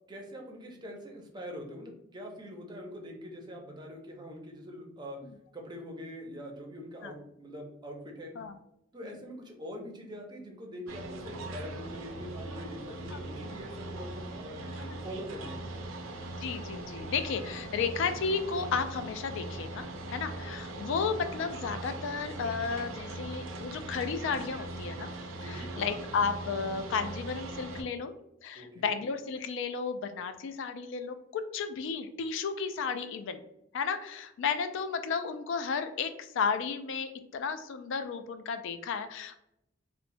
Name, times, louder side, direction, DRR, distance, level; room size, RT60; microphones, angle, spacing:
voice 1, 0.1-5.2 5.5-8.3 8.9-14.6 15.0-15.9 25.4-25.8 28.5-28.9, equal, 20° right, 1 dB, 0.5 m, -43 dB
sound 1, 10.9-27.8, right 2 dB, 85° right, 0.5 m, -40 dB
voice 2, 16.4-25.1 25.4-28.1 28.4-33.4 33.7-39.4, left 5 dB, 65° left, 9 dB, 0.3 m, -33 dB
3.1 x 2.1 x 2.6 m, 0.80 s
head